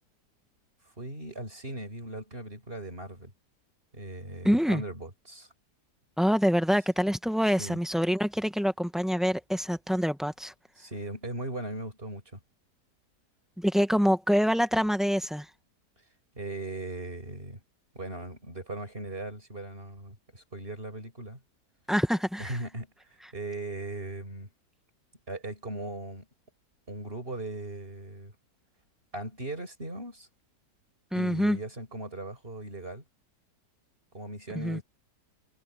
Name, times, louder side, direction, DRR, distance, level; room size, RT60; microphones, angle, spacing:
voice 1, 1.0-3.3 3.9-5.5 7.6-7.8 10.8-12.4 16.3-17.6 17.9-21.4 22.4-24.5 25.3-26.3 26.9-28.3 29.1-30.3 31.1-33.0 34.1-34.8, right 2 dB, 30° right, 6.9 m, -38 dB
voice 2, 4.4-4.8 6.2-10.5 13.6-15.5 21.9-22.6 31.1-31.6 34.5-34.8, equal, ahead, 0.6 m, -26 dB
omnidirectional pair, 1.8 m